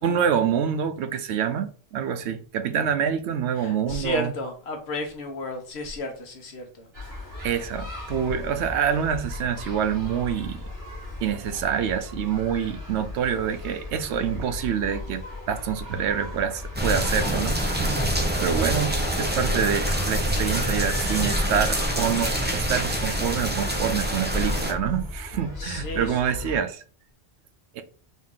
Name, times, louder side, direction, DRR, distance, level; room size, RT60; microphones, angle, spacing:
voice 1, 0.0-4.3 7.4-10.6 11.2-26.8 27.7-27.8, right 8 dB, 80° right, 0.9 m, -26 dB
voice 2, 3.6-6.9 17.9-18.1 25.6-26.2, left 1 dB, 70° left, 1.1 m, -33 dB
sound 1, 6.9-26.6, left 2 dB, 50° right, 1.6 m, -37 dB
sound 2, 16.8-24.7, right 1 dB, 15° right, 0.4 m, -26 dB
4.1 x 2.6 x 3.6 m
omnidirectional pair, 1.1 m